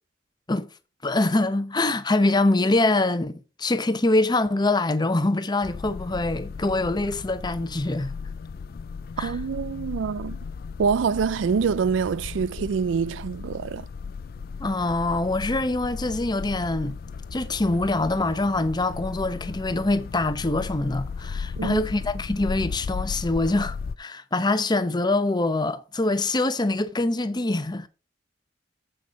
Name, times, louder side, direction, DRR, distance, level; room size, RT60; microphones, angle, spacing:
voice 1, 1.0-8.1 9.2-9.3 14.6-17.0 17.3-27.9, left 2 dB, 25° left, 0.8 m, -24 dB
sound 1, 5.6-24.0, left 5 dB, 55° left, 0.4 m, -36 dB
voice 2, 9.2-10.4 10.8-13.9 21.6-21.8, right 6 dB, 80° right, 0.4 m, -25 dB
8.0 x 6.4 x 5.2 m
head